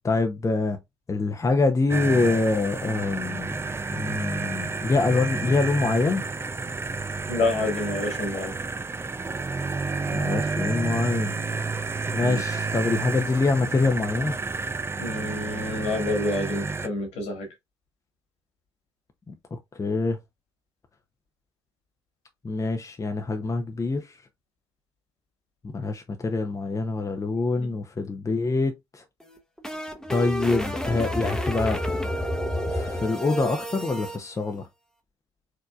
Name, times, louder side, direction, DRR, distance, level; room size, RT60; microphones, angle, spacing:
voice 1, 0.0-0.8 1.1-3.6 3.9-6.3 10.1-11.3 12.1-14.4 19.3-20.2 22.4-24.2 25.6-29.0 30.1-34.7, left 3 dB, 25° left, 0.9 m, -25 dB
sound 1, 1.9-16.9, right 4 dB, 20° right, 0.6 m, -30 dB
voice 2, 7.3-8.5 12.2-12.4 15.0-17.5 27.6-27.7, left 2 dB, 65° left, 2.2 m, -28 dB
sound 2, 29.2-34.2, equal, 5° left, 1.1 m, -30 dB
4.7 x 3.7 x 2.5 m
figure-of-eight pair, 45°, 12 cm